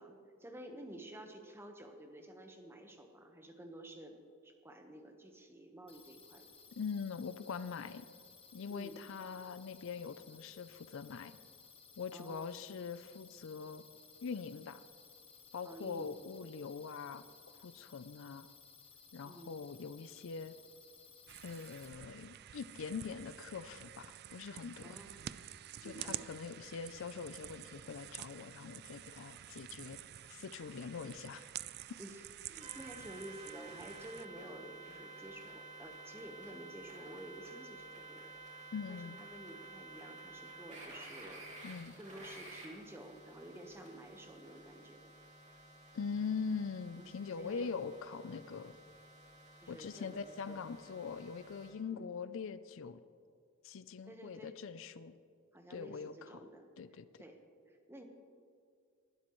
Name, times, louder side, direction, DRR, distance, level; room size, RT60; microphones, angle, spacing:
voice 1, 0.0-6.5 8.7-9.0 12.1-12.5 15.6-16.2 19.3-19.6 24.8-25.1 25.8-26.2 32.0-41.7 42.0-45.1 47.0-47.1 47.4-47.7 49.6-50.6 51.9-52.1 54.0-54.5 55.5-57.4 57.7-58.0, right 1 dB, 10° right, 4 dB, 1.2 m, -51 dB
sound 1, 5.9-21.9, left 5 dB, 25° left, 1.3 m, -59 dB
voice 2, 6.8-8.1 8.5-11.4 12.0-13.8 14.2-14.8 15.5-17.2 17.6-18.5 19.1-20.5 21.4-25.0 25.8-30.0 30.3-31.4 38.7-39.2 41.6-41.9 45.9-48.7 49.7-53.0 53.6-55.1 55.7-56.1 56.8-57.2, left 5 dB, 70° left, 13 dB, 0.5 m, -43 dB
sound 2, 21.3-34.3, right 12 dB, 50° right, 0.3 m, -49 dB
sound 3, 32.6-51.7, right 2 dB, 35° right, 2.8 m, -53 dB
20.0 x 12.0 x 3.1 m, 2.2 s
head